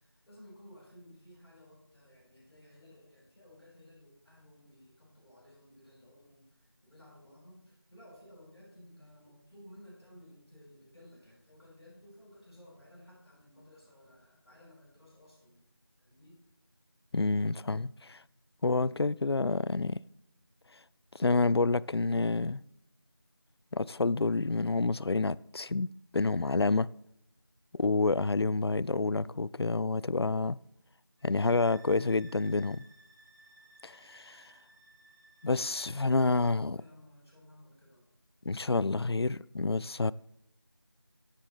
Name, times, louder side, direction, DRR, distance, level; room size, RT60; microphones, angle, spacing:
voice 1, 0.0-15.6 16.0-16.4 36.2-38.0 38.4-38.7, left 1 dB, ahead, 3.5 m, -56 dB
voice 2, 17.1-18.2 18.6-20.0 21.1-22.6 23.7-26.9 27.8-30.6 31.2-32.8 33.8-34.5 35.4-36.8 38.5-40.1, left 3 dB, 80° left, 0.4 m, -28 dB
sound 1, 31.2-36.6, right 2 dB, 50° left, 2.8 m, -59 dB
14.0 x 10.5 x 3.5 m
figure-of-eight pair, 175°, 13 cm